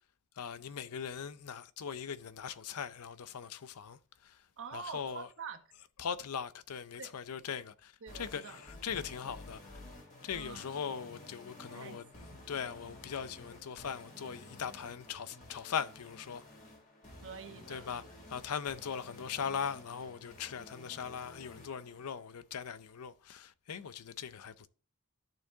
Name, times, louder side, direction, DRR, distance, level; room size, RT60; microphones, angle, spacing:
voice 1, 0.4-4.4 4.7-5.3 6.0-9.6 10.2-12.0 12.5-16.4 17.7-18.0 18.3-24.7, left 7 dB, 80° left, 0.5 m, -40 dB
voice 2, 4.6-5.6 7.0-7.1 8.0-8.6 10.3-10.7 11.7-12.4 17.2-17.9, right 6 dB, 60° right, 1.1 m, -46 dB
sound 1, 8.1-22.1, left 1 dB, 40° left, 3.1 m, -52 dB
13.5 x 4.5 x 2.8 m
head